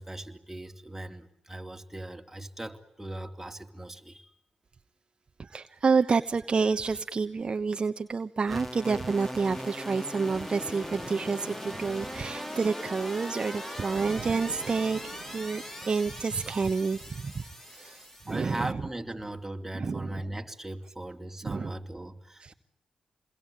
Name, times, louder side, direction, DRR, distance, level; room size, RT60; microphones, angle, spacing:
voice 1, 0.0-4.3 18.3-22.5, right 1 dB, 10° right, 3 dB, 3.5 m, -39 dB
voice 2, 5.4-15.0 15.3-18.7 19.7-20.2 21.4-21.7 22.4-22.5, right 4 dB, 50° right, 8 dB, 1.1 m, -29 dB
sound 1, 8.5-18.7, equal, 15° left, 3.7 m, -40 dB
sound 2, 13.9-17.3, right 8 dB, 85° right, 1.5 m, -46 dB
29.0 x 22.0 x 8.9 m, 0.75 s
cardioid pair, 60°, 2 cm